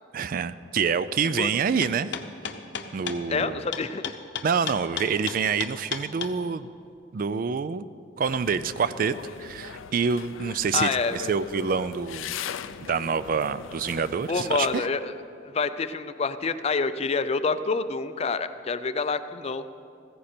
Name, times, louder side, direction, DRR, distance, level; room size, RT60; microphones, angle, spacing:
voice 1, 0.1-2.1 2.9-3.7 4.4-6.7 7.1-7.9 8.2-9.1 9.4-12.3 12.9-14.9, right 6 dB, 45° right, 15 dB, 0.3 m, -27 dB
sound 1, 1.8-6.3, left 8 dB, 65° left, 0.8 m, -33 dB
voice 2, 3.3-4.2 10.7-11.3 14.3-15.1 15.4-19.7, left 4 dB, 30° left, 12 dB, 0.4 m, -27 dB
sound 2, 8.2-14.8, left 7 dB, 85° left, 0.5 m, -40 dB
15.0 x 14.5 x 4.3 m, 2.6 s
head